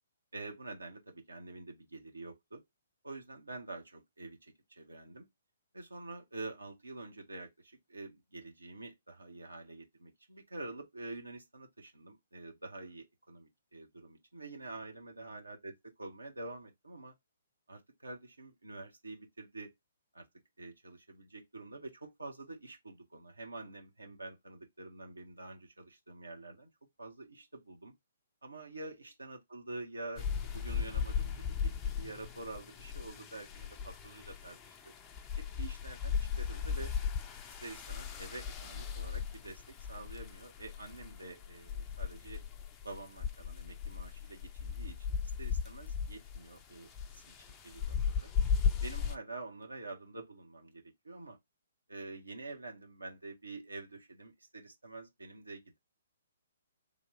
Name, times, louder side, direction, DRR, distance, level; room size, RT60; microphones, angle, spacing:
voice 1, 0.3-2.6 3.0-5.3 5.7-17.1 17.7-19.7 20.1-20.3 20.6-26.7 27.0-27.9 28.4-34.9 35.4-36.9 37.5-42.4 42.8-45.1 45.4-47.3 47.6-48.3 48.8-51.4 51.9-55.8, right 2 dB, 75° right, 1.3 m, -47 dB
sound 1, 30.2-49.2, left 7 dB, 20° left, 0.5 m, -37 dB
3.6 x 2.6 x 3.2 m
figure-of-eight pair, 125°, 0 cm